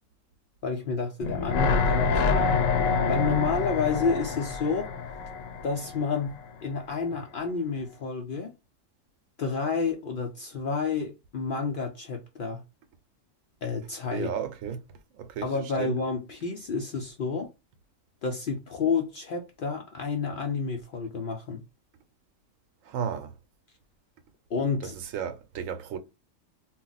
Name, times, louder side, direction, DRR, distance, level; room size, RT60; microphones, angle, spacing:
voice 1, 0.6-2.7 3.1-4.9 5.6-6.4 6.6-8.5 9.4-12.6 13.6-14.3 15.4-17.5 18.2-21.6 24.5-24.9, left 5 dB, 65° left, 0.5 m, -30 dB
sound 1, 1.2-6.4 6.7-6.8, left 4 dB, 80° left, 1.0 m, -26 dB
voice 2, 14.1-14.8 15.2-15.5 15.8-15.9 22.9-23.3 24.8-26.0, right 8 dB, 85° right, 1.0 m, -33 dB
2.3 x 2.0 x 3.8 m
omnidirectional pair, 1.3 m